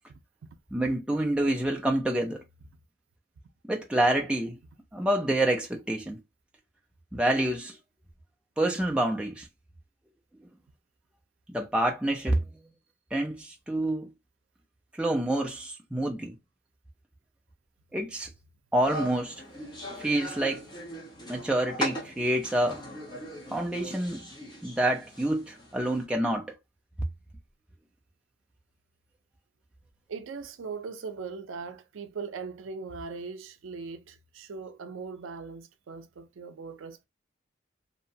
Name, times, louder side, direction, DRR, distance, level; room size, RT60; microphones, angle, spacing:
voice 1, 0.1-0.5 30.1-37.1, right 5 dB, 85° right, 0.4 m, -40 dB
voice 2, 0.7-2.4 3.6-4.6 4.9-6.2 7.1-7.8 8.6-9.4 11.5-12.4 13.1-14.1 15.0-16.3 17.9-18.3 18.7-19.3 20.0-20.6 21.3-22.8 23.5-24.2 24.6-26.5, right 1 dB, 5° right, 0.4 m, -27 dB
sound 1, 18.7-26.0, equal, 20° left, 0.9 m, -39 dB
2.8 x 2.1 x 2.6 m
head